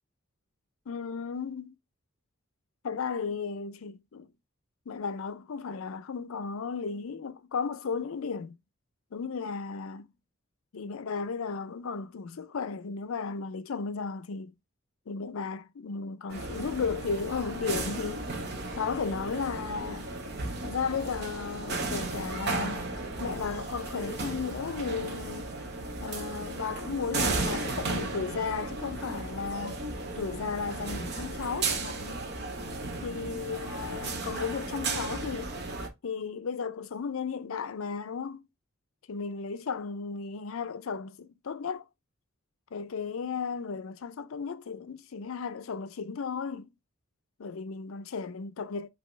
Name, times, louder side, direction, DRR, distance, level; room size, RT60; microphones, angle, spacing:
voice 1, 0.9-1.8 2.8-4.3 4.9-8.6 9.1-10.1 10.7-14.5 15.1-18.3 18.8-20.1 20.6-22.9 23.2-25.5 26.0-29.8 30.2-32.2 33.0-35.6 36.0-38.5 39.1-41.9 42.7-46.7 47.4-48.9, left 5 dB, 75° left, 0.5 m, -35 dB
sound 1, 16.3-35.9, right 3 dB, 50° right, 1.0 m, -35 dB
5.4 x 2.9 x 3.1 m
head